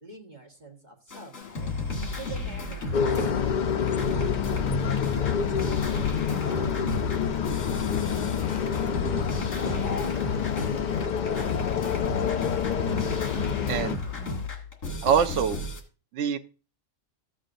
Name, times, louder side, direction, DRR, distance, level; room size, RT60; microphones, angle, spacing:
voice 1, 0.0-7.6 8.0-10.6 10.8-12.2, right 2 dB, 35° right, 0 dB, 1.5 m, -48 dB
sound 1, 1.1-3.6 3.9-11.0 11.3-15.8, left 2 dB, 80° left, 2.2 m, -34 dB
Rain, 1.4-14.5, left 5 dB, 35° left, 0.8 m, -44 dB
sound 2, 2.9-14.0, left 7 dB, 60° left, 0.4 m, -27 dB
voice 2, 13.7-14.0 15.0-15.6 16.1-16.4, right 7 dB, 70° right, 8 dB, 1.0 m, -24 dB
14.0 x 7.6 x 2.5 m, 0.34 s
omnidirectional pair, 1.3 m